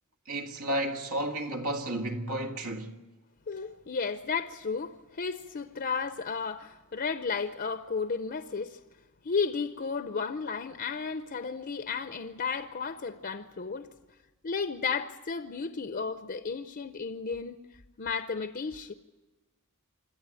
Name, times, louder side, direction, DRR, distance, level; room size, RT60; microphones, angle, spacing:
voice 1, 0.3-2.9, right 1 dB, 80° right, 1.9 m, -32 dB
voice 2, 3.5-8.8 9.2-13.9 14.4-17.6 18.0-18.9, left 5 dB, 45° left, 0.6 m, -33 dB
26.0 x 13.5 x 8.9 m
head